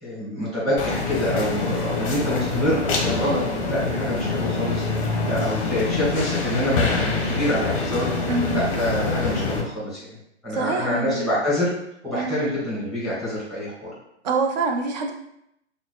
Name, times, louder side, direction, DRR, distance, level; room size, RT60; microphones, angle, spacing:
voice 1, 0.0-8.1 8.5-10.0 10.4-11.7 12.0-13.9, left 1 dB, ahead, -7 dB, 1.4 m, -26 dB
sound 1, 0.8-9.6, left 3 dB, 30° left, 0.6 m, -25 dB
voice 2, 8.3-8.6 10.5-11.3 12.1-12.3 14.2-15.1, right 4 dB, 40° right, 3 dB, 0.5 m, -25 dB
5.8 x 2.1 x 2.3 m, 0.78 s
figure-of-eight pair, 120°, 35 cm